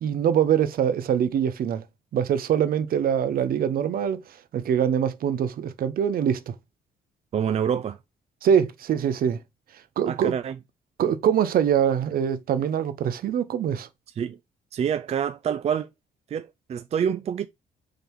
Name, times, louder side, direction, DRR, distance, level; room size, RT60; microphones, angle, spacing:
voice 1, 0.0-1.8 2.1-4.2 4.5-6.5 8.4-9.4 10.0-10.3 11.0-13.9, right 8 dB, 65° right, 0.9 m, -23 dB
voice 2, 7.3-8.0 10.1-10.6 14.2-14.4 14.7-15.9 16.3-17.5, right 8 dB, 40° right, 0.4 m, -27 dB
4.5 x 3.9 x 5.4 m
cardioid pair, 115°, 16 cm